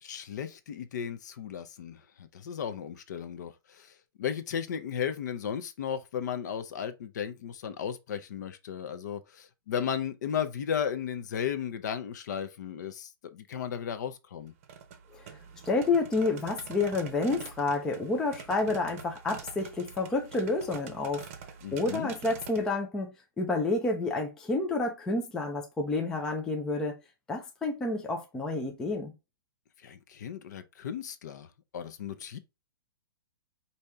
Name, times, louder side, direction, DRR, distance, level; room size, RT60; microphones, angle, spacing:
voice 1, 0.0-14.5 21.6-22.1 29.8-31.5 31.7-32.4, left 8 dB, 50° left, 0.7 m, -35 dB
sound 1, 14.5-22.7, right 7 dB, 35° right, 0.8 m, -46 dB
voice 2, 15.6-21.3 21.7-27.0 27.3-29.1, left 3 dB, 5° left, 0.4 m, -29 dB
5.1 x 2.8 x 3.3 m
hypercardioid pair, 170°, 12 cm